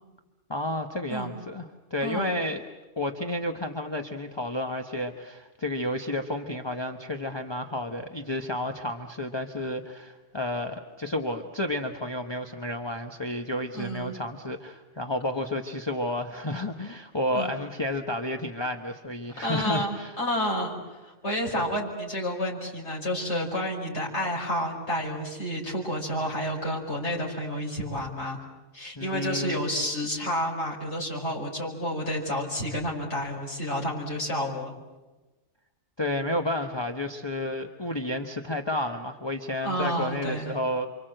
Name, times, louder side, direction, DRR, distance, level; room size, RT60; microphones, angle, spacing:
voice 1, 0.5-2.6 3.0-20.2 29.0-29.6 36.0-40.9, left 1 dB, 20° left, 3 dB, 1.2 m, -31 dB
voice 2, 2.0-2.3 13.7-14.2 17.3-17.5 19.4-28.4 28.7-34.7 39.6-40.5, equal, 65° left, -3 dB, 5.4 m, -30 dB
29.0 x 25.0 x 7.9 m, 1.1 s
omnidirectional pair, 1.2 m